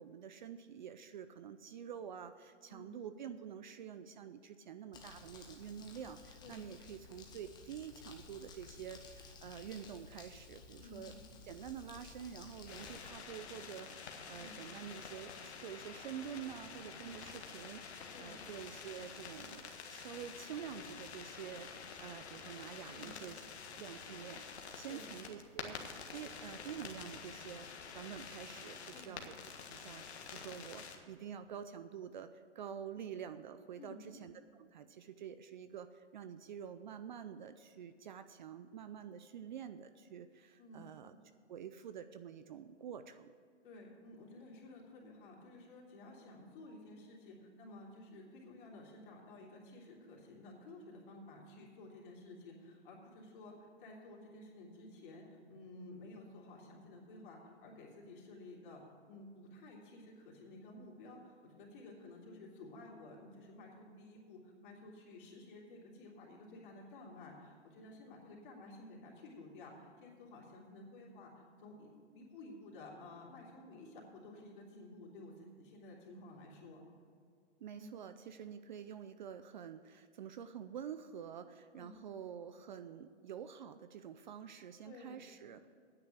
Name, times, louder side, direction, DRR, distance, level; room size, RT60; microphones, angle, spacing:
voice 1, 0.0-11.2 11.4-23.4 23.7-24.4 24.7-27.7 27.9-29.4 29.7-41.1 41.5-43.3 77.6-85.7, right 8 dB, 45° right, 11 dB, 0.5 m, -48 dB
Crumpling crinkling, 4.9-13.1, left 4 dB, 10° left, 1.0 m, -55 dB
voice 2, 6.4-6.7 10.8-11.1 14.3-14.6 18.1-18.4 22.9-23.2 24.9-25.1 28.8-29.2 33.8-34.1 40.6-40.9 43.6-58.8 59.1-71.3 71.6-76.8 77.7-77.9 81.7-82.0 84.8-85.2, left 2 dB, 45° left, -2 dB, 3.3 m, -53 dB
sound 1, 12.7-31.0, left 6 dB, 65° left, 1.6 m, -49 dB
9.7 x 7.8 x 8.1 m, 2.2 s
hypercardioid pair, 150°, 35 cm